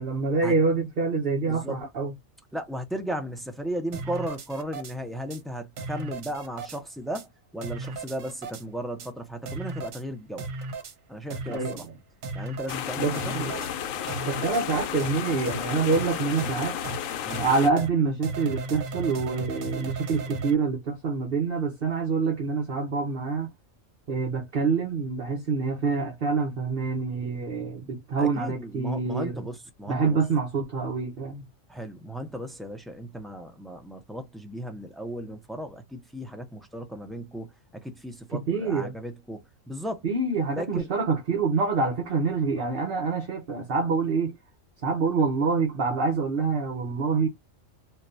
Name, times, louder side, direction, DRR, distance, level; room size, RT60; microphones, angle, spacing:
voice 1, 0.0-2.1 11.5-11.9 13.0-13.6 14.3-16.8 17.4-23.5 24.1-29.4 29.9-31.4 38.3-38.9 40.0-44.3 44.8-47.3, right 4 dB, 50° right, 1.1 m, -26 dB
voice 2, 1.4-1.8 2.5-10.5 11.1-11.9 12.3-13.4 17.2-17.5 28.2-30.2 31.7-40.0 40.5-40.9, equal, ahead, 0.3 m, -35 dB
sound 1, 3.9-4.9 5.3-5.4 5.8-6.8 7.2-7.3 7.6-8.6 9.0-9.1 9.5-10.0 10.4-10.9 11.3-11.9 12.2-12.8 13.2-13.7 14.1-14.6 15.0-15.1 15.5-15.6 15.9-16.1 16.4-16.5 16.8-17.0 17.3-17.4 17.8-17.9 18.2-20.5, right 3 dB, 80° right, 1.2 m, -35 dB
sound 2, 12.7-17.7, left 8 dB, 85° left, 1.0 m, -33 dB
4.4 x 2.3 x 2.6 m
omnidirectional pair, 1.4 m